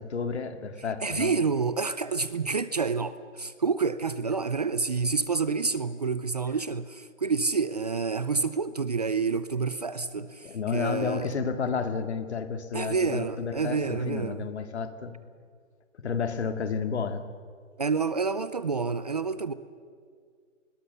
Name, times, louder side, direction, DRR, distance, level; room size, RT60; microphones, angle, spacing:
voice 1, 0.0-1.3 10.4-15.1 16.0-17.3, left 5 dB, 60° left, 2.3 m, -31 dB
voice 2, 1.0-11.4 12.7-14.5 17.8-19.5, right 4 dB, 30° right, 0.6 m, -28 dB
30.0 x 21.0 x 6.8 m
hypercardioid pair, 175°, 38 cm